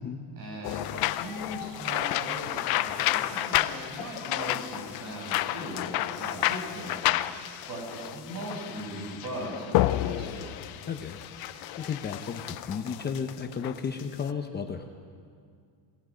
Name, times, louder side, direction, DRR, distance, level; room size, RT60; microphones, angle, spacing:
voice 1, 0.4-7.1 7.7-10.5, right 1 dB, 45° right, -1 dB, 7.4 m, -39 dB
sound 1, 0.6-14.3, left 15 dB, 55° left, 0.6 m, -30 dB
sound 2, 1.0-12.5, left 11 dB, 80° left, 1.5 m, -46 dB
voice 2, 10.9-11.2 11.8-14.8, left 6 dB, 20° left, 5 dB, 0.8 m, -33 dB
27.5 x 19.0 x 5.1 m, 2.3 s
cardioid pair, 160°, 46 cm